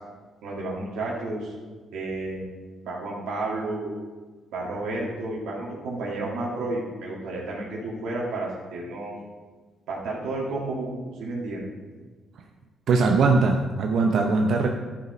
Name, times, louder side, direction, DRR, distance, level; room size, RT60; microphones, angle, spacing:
voice 1, 0.4-1.5 1.9-2.5 2.8-3.9 4.5-9.1 9.9-11.7, right 2 dB, 85° right, -3 dB, 2.3 m, -31 dB
voice 2, 12.9-14.7, right 4 dB, 70° right, 2 dB, 0.7 m, -20 dB
11.5 x 4.9 x 5.4 m, 1.4 s
cardioid pair, 90°, 0 cm